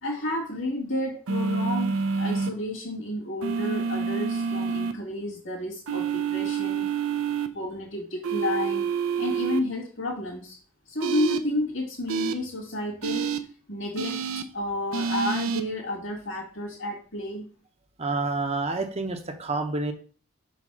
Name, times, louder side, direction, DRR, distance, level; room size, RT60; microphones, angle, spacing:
voice 1, 0.0-6.9 7.5-8.9 9.2-10.6 10.9-14.2 14.5-17.5, left 1 dB, 60° left, -6 dB, 1.8 m, -31 dB
sound 1, 1.3-2.5 3.4-4.9 5.9-7.5 8.2-9.6 11.0-11.4 12.1-12.3 13.0-13.4 14.0-14.4 14.9-15.6, right 6 dB, 80° right, 0.6 m, -27 dB
voice 2, 18.0-19.9, right 3 dB, 30° right, 6 dB, 0.8 m, -28 dB
5.4 x 4.1 x 6.0 m, 0.40 s
head